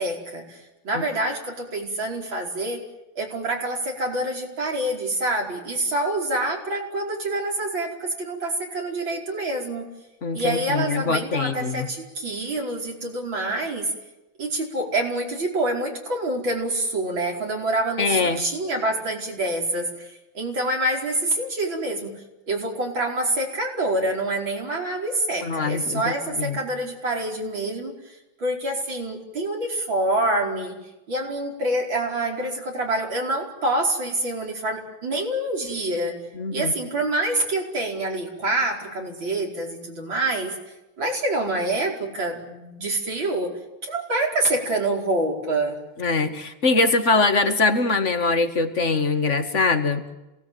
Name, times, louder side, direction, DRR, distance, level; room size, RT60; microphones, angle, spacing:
voice 1, 0.0-2.8 3.2-9.9 10.3-13.9 14.4-22.2 22.5-27.9 28.4-30.8 31.1-36.2 36.5-40.6 41.0-43.5 43.8-45.8, right 1 dB, 85° right, 0 dB, 5.7 m, -26 dB
voice 2, 10.2-11.9 18.0-18.4 25.4-26.6 36.3-36.7 46.0-50.1, left 3 dB, 40° left, 8 dB, 2.1 m, -23 dB
27.5 x 18.5 x 9.4 m, 1.0 s
omnidirectional pair, 2.1 m